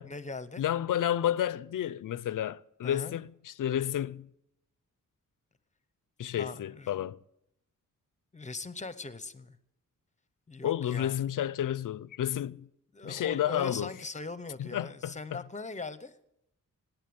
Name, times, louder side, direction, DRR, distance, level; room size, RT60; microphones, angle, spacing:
voice 1, 0.1-0.6 2.8-3.2 6.4-6.9 8.3-9.6 10.5-11.2 12.9-16.2, left 3 dB, 20° left, 0.8 m, -40 dB
voice 2, 0.6-4.3 6.2-7.2 10.6-12.7 13.0-13.9 14.6-15.4, left 11 dB, 70° left, 0.5 m, -31 dB
17.5 x 9.2 x 7.8 m
wide cardioid pair, 130°, 33 cm